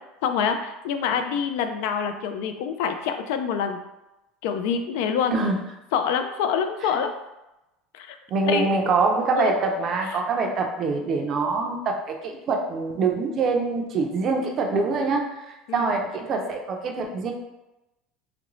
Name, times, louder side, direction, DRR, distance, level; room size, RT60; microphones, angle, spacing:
voice 1, 0.2-3.8 4.4-5.3 5.9-7.1 7.9-8.2 8.5-8.7 9.4-9.6 15.7-15.9, left 7 dB, 75° left, 7 dB, 0.3 m, -26 dB
voice 2, 8.3-17.3, right 3 dB, 35° right, 3 dB, 0.4 m, -25 dB
3.0 x 2.5 x 3.0 m, 0.95 s
cardioid pair, 150°, 0 cm